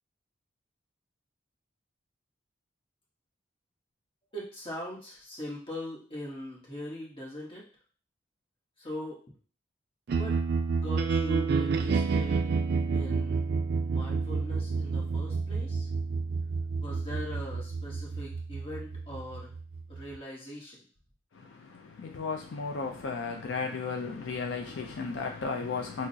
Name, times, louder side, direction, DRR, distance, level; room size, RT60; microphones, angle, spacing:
voice 1, 4.3-7.6 8.8-9.2 10.1-10.4 10.8-12.5 12.9-13.4 13.9-15.9 16.8-19.5 19.9-20.9, left 1 dB, 25° left, 1.1 m, -41 dB
sound 1, 10.1-20.2, right 4 dB, 50° right, 0.3 m, -29 dB
voice 2, 21.3-26.1, left 4 dB, 65° left, 0.4 m, -34 dB
5.9 x 2.0 x 2.7 m
head